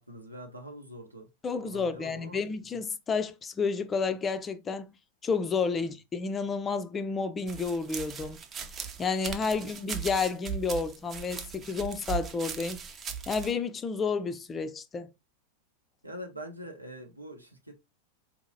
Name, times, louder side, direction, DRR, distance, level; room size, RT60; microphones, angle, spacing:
voice 1, 0.0-1.3 1.6-2.4 5.8-5.9 16.0-17.8, equal, 85° right, 0.8 m, -44 dB
voice 2, 1.4-4.9 5.2-8.4 9.0-12.8 13.3-15.1, left 5 dB, 20° left, 0.4 m, -30 dB
sound 1, 7.5-13.5, right 7 dB, 25° right, 0.6 m, -38 dB
4.2 x 2.7 x 2.7 m
figure-of-eight pair, 90°, 0 cm